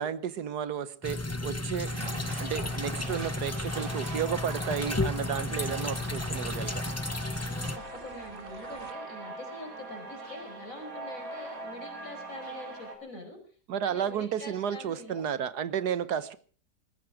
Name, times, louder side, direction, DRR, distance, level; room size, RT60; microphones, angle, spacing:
voice 1, 0.0-1.9 2.4-6.9 13.7-16.4, right 8 dB, 75° right, 1.5 m, -32 dB
sound 1, 1.0-7.8, left 2 dB, 20° left, 0.4 m, -33 dB
sound 2, 1.9-8.9, right 4 dB, 35° right, 1.5 m, -45 dB
sound 3, 2.3-13.0, right 2 dB, 55° right, 3.7 m, -43 dB
voice 2, 5.1-5.8 7.5-13.4 13.8-15.2, left 1 dB, 50° left, 5.4 m, -45 dB
20.5 x 15.0 x 4.8 m
omnidirectional pair, 1.8 m